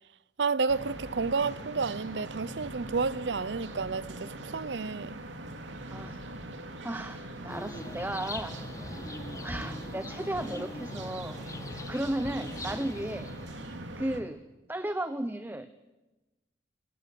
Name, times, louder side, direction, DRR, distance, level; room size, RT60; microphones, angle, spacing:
voice 1, 0.4-5.2, right 4 dB, 75° right, 0.7 m, -31 dB
sound 1, 0.7-14.2, right 1 dB, 90° right, 2.3 m, -42 dB
voice 2, 6.8-8.5 8.8-11.4 11.6-13.3 14.0-14.4 14.7-15.7, right 1 dB, 10° right, 0.8 m, -35 dB
sound 2, 7.5-13.8, left 1 dB, 20° left, 1.4 m, -42 dB
27.0 x 18.0 x 7.7 m
head